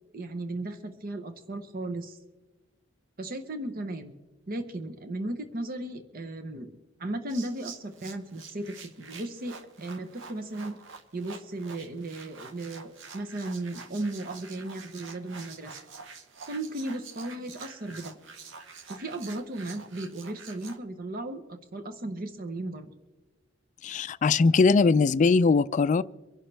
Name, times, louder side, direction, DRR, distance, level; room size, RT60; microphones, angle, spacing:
voice 1, 0.1-2.2 3.2-4.1 4.5-6.7 7.0-10.8 11.1-15.8 16.5-18.1 18.9-22.9, right 2 dB, 50° right, 0.9 m, -36 dB
sound 1, 7.3-20.8, right 5 dB, 70° right, 1.1 m, -47 dB
voice 2, 23.8-26.0, left 4 dB, 40° left, 0.3 m, -21 dB
24.5 x 11.0 x 3.3 m
head